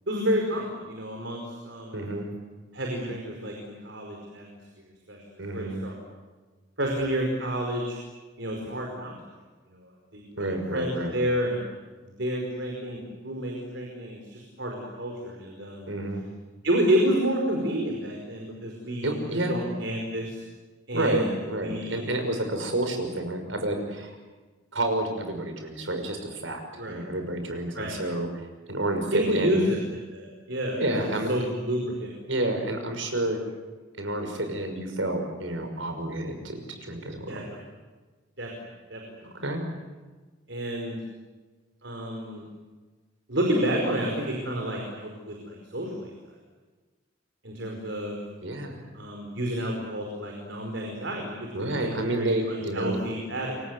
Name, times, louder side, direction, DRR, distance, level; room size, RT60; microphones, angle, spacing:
voice 1, 0.1-2.2 2.7-5.9 6.8-8.0 8.4-9.1 9.7-11.6 12.0-15.9 16.6-20.4 20.9-22.1 26.8-27.0 27.7-28.0 29.1-29.8 30.1-31.0 31.3-32.1 37.3-37.6 38.4-38.5 38.9-39.3 40.5-41.0 41.8-42.4 43.3-46.1 47.4-48.2 48.9-51.5 51.8-53.6, equal, 65° right, 1 dB, 5.0 m, -30 dB
voice 2, 1.9-2.3 5.4-5.8 10.4-11.1 15.9-16.2 19.0-19.6 20.9-24.1 24.7-26.6 26.9-28.3 28.7-29.7 30.7-31.3 32.3-33.4 34.0-37.4 39.2-39.6 48.4-48.8 51.5-53.0, right 1 dB, 85° right, 6 dB, 5.9 m, -29 dB
29.0 x 24.5 x 8.0 m, 1.3 s
head